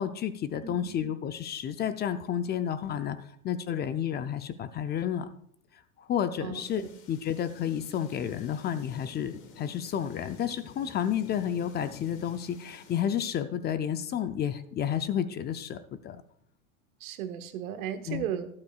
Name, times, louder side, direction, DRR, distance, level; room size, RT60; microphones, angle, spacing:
voice 1, 0.0-5.3 6.0-6.8 7.1-16.2 18.1-18.3, left 9 dB, 25° left, 11 dB, 0.5 m, -31 dB
voice 2, 0.6-0.9 6.4-6.6 17.0-18.5, right 10 dB, 85° right, 9 dB, 1.3 m, -35 dB
sound 1, 6.5-13.0, left 5 dB, 45° left, 1.8 m, -51 dB
12.5 x 11.5 x 2.4 m, 0.66 s
supercardioid pair, 125°, 42 cm